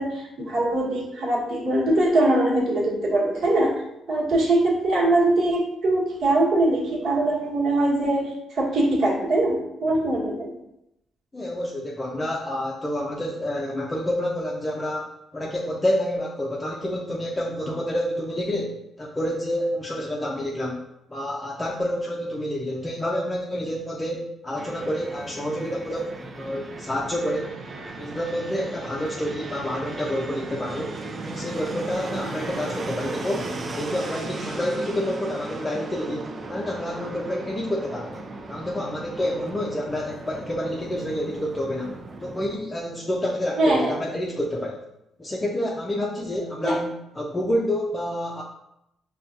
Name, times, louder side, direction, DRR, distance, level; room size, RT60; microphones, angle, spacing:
voice 1, 0.0-3.7 4.1-10.5 43.6-44.0 46.6-46.8, right 1 dB, 60° right, -5 dB, 1.3 m, -22 dB
voice 2, 11.3-15.0 15.3-20.8 21.1-27.5 28.0-30.9 31.2-33.5 33.7-41.9 42.2-44.8 45.2-48.4, left 1 dB, 20° left, -3 dB, 0.5 m, -28 dB
Fixed-wing aircraft airplane, 24.6-42.6, right 2 dB, 40° right, 0.5 m, -36 dB
5.4 x 2.3 x 2.6 m, 0.84 s
cardioid pair, 90°, 0 cm